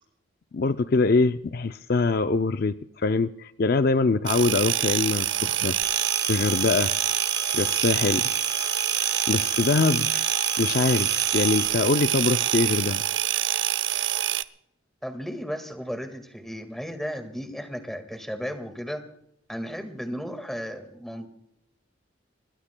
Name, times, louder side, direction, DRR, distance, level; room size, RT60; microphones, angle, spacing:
voice 1, 0.5-5.8 6.3-6.9 7.5-8.3 9.3-13.0, left 3 dB, 50° left, 10 dB, 0.5 m, -24 dB
sound 1, 4.3-14.4, right 12 dB, 75° right, 0.6 m, -26 dB
Telephone, 5.8-11.7, right 2 dB, 20° right, 2.8 m, -33 dB
voice 2, 15.0-19.0 19.5-21.3, equal, ahead, 7 dB, 1.8 m, -34 dB
26.0 x 20.5 x 2.2 m, 0.74 s
head